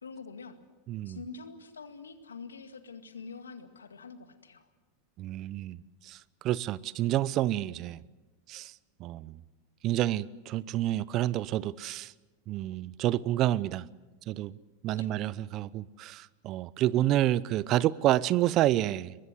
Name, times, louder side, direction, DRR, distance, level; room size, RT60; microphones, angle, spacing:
voice 1, 0.0-0.6 1.1-4.7 15.0-15.1, left 4 dB, 90° left, 2.0 m, -45 dB
voice 2, 0.9-1.2 5.2-8.0 8.5-8.7 9.0-9.4 9.8-12.1 12.5-13.8 14.3-14.6 14.8-19.1, right 14 dB, 45° right, 0.7 m, -29 dB
23.5 x 21.0 x 8.0 m
hypercardioid pair, 95°, 0 cm